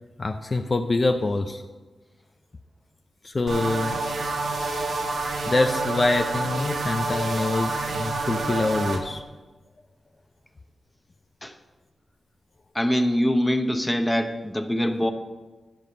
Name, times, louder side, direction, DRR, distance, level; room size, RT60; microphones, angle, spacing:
voice 1, 0.2-1.6 3.2-4.0 5.5-9.2, left 2 dB, 40° left, 6 dB, 0.5 m, -25 dB
sound 1, 3.5-9.0, right 3 dB, 80° right, 1.3 m, -28 dB
voice 2, 12.7-15.1, equal, 10° left, 7 dB, 0.8 m, -23 dB
11.0 x 5.2 x 6.5 m, 1.2 s
wide cardioid pair, 90°, 0 cm